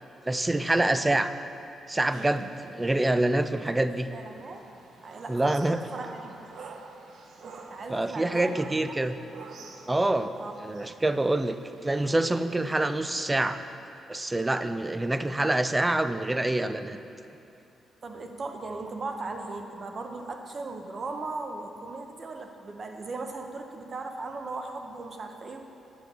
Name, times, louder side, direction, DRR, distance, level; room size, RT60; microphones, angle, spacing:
voice 1, 0.3-1.3 1.9-4.1 5.3-5.8 7.9-9.2 9.9-10.3 10.6-11.6 11.8-13.6 14.1-17.0, right 2 dB, 15° right, 11 dB, 0.4 m, -26 dB
sound 1, 1.9-13.2, right 4 dB, 70° right, 0.8 m, -49 dB
voice 2, 4.1-4.6 5.0-6.9 7.4-8.9 9.5-9.7 10.4-10.5 18.0-25.6, right 3 dB, 40° right, 4 dB, 0.9 m, -38 dB
9.8 x 7.5 x 5.4 m, 2.8 s
cardioid pair, 110°, 0 cm